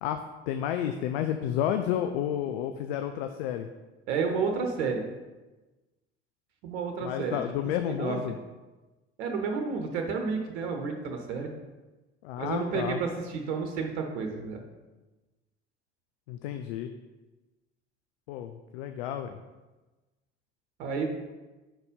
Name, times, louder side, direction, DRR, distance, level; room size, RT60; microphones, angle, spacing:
voice 1, 0.0-3.7 7.0-8.4 12.2-13.0 16.3-16.9 18.3-19.4, left 10 dB, 65° left, 7 dB, 0.5 m, -31 dB
voice 2, 4.1-5.0 6.6-7.4 7.9-8.2 9.2-11.5 12.4-14.6 20.8-21.0, right 5 dB, 60° right, 3 dB, 1.0 m, -31 dB
6.0 x 4.1 x 5.2 m, 1.2 s
figure-of-eight pair, 65°, 34 cm